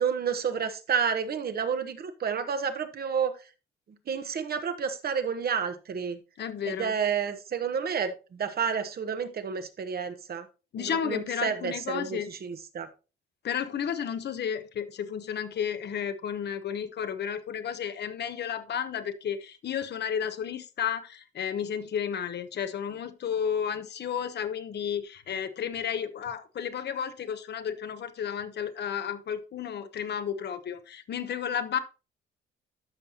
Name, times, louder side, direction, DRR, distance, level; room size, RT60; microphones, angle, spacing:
voice 1, 0.0-3.3 4.1-6.2 6.7-10.5 10.8-12.9, right 6 dB, 50° right, 9 dB, 1.3 m, -30 dB
voice 2, 6.4-6.9 10.7-12.3 13.4-31.8, left 8 dB, 60° left, 11 dB, 1.0 m, -32 dB
13.0 x 5.5 x 2.9 m, 0.31 s
cardioid pair, 90°, 20 cm